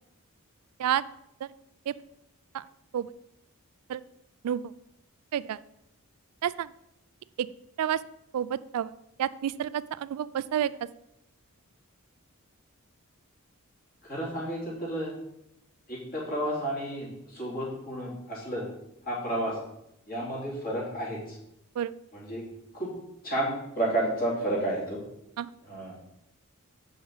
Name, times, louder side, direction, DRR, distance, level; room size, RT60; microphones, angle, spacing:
voice 1, 8.3-8.9 9.2-10.8 21.8-21.9 25.4-25.5, right 10 dB, 90° right, 17 dB, 0.3 m, -29 dB
voice 2, 14.0-15.1 15.9-18.7 19.1-19.6 20.1-21.4 22.1-22.4 22.7-22.9 23.2-25.0 25.6-25.9, right 1 dB, 40° left, -4 dB, 2.8 m, -31 dB
7.2 x 5.6 x 4.6 m, 0.82 s
head